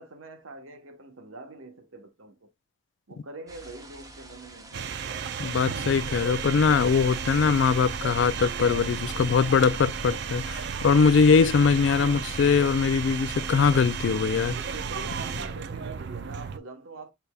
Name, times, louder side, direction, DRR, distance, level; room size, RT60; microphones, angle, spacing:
voice 1, 0.0-2.5 3.1-5.0 14.6-17.1, right 2 dB, 85° right, 1.1 m, -44 dB
sound 1, 3.5-9.3, right 2 dB, 15° right, 0.7 m, -48 dB
sound 2, 4.7-16.6, right 7 dB, 55° right, 0.4 m, -34 dB
voice 2, 5.4-14.6, left 5 dB, 60° left, 0.3 m, -22 dB
sound 3, 6.0-15.6, left 1 dB, 15° left, 1.2 m, -42 dB
6.7 x 3.4 x 2.3 m
head